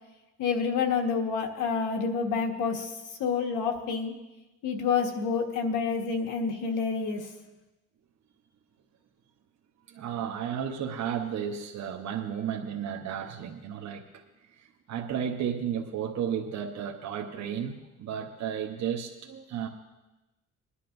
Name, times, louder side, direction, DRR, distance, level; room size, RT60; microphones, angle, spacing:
voice 1, 0.4-4.1 4.6-7.3, left 5 dB, 90° left, 3 dB, 1.5 m, -28 dB
voice 2, 9.9-14.2 14.5-19.7, right 8 dB, 65° right, 1 dB, 1.0 m, -33 dB
21.5 x 11.0 x 2.6 m, 1.0 s
cardioid pair, 90°, 30 cm